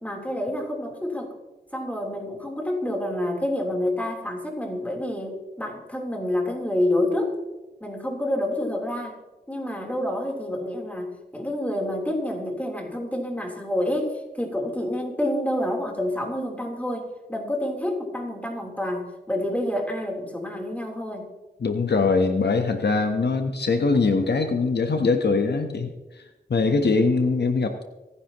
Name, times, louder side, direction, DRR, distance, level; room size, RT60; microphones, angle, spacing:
voice 1, 0.0-1.3 1.7-7.4 7.8-9.2 9.5-21.3, left 1 dB, 10° left, 0 dB, 3.6 m, -28 dB
voice 2, 21.6-26.2 26.5-27.9, left 4 dB, 80° left, 6 dB, 1.1 m, -22 dB
27.0 x 10.0 x 3.0 m, 1.1 s
wide cardioid pair, 65°, 17 cm